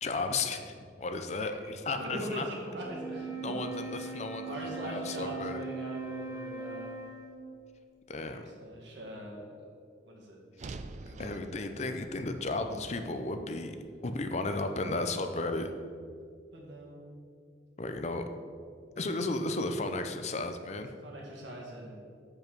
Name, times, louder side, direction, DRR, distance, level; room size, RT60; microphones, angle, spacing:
voice 1, 0.0-2.5 3.4-5.6 8.1-8.4 10.6-10.8 11.2-13.8 14.0-15.7 17.8-18.3 19.0-20.9, left 3 dB, 35° left, 7 dB, 0.5 m, -34 dB
voice 2, 1.4-1.7 2.0-3.3 3.9-4.2 4.4-6.9 8.4-9.5 10.1-10.4 11.0-11.3 16.5-17.0 18.9-19.2 21.0-22.0, right 1 dB, 75° right, -2 dB, 2.0 m, -41 dB
Wind instrument woodwind instrument, 2.8-7.6, right 4 dB, 20° right, 1.3 m, -40 dB
sound 1, 10.6-14.8, right 3 dB, 40° right, 0.3 m, -48 dB
7.1 x 5.5 x 6.0 m, 2.2 s
head